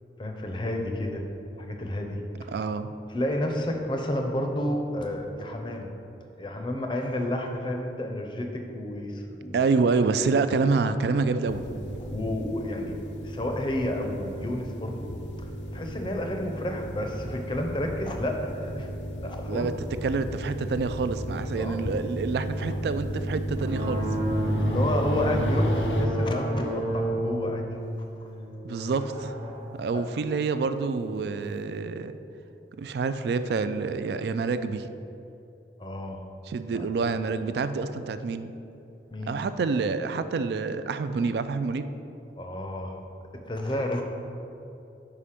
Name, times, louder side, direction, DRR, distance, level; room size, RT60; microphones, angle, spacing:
voice 1, 0.2-1.3 1.6-2.2 3.1-5.9 6.4-9.7 12.0-13.0 13.2-15.1 15.7-18.9 19.2-19.7 21.5-22.0 24.4-27.6 29.9-30.0 35.8-36.2 36.7-36.9 39.1-39.4 42.4-43.0 43.3-44.0, left 1 dB, 25° left, 3 dB, 0.5 m, -31 dB
voice 2, 2.5-2.9 9.5-11.6 19.5-19.7 20.0-24.0 28.6-29.4 29.7-32.2 32.8-34.9 36.5-38.5 39.3-41.9, right 4 dB, 70° right, 11 dB, 0.3 m, -27 dB
sound 1, 11.5-26.1, right 1 dB, 90° left, 0.6 m, -34 dB
sound 2, 23.6-31.7, equal, 25° right, 0.7 m, -31 dB
5.0 x 4.9 x 5.7 m, 2.9 s
head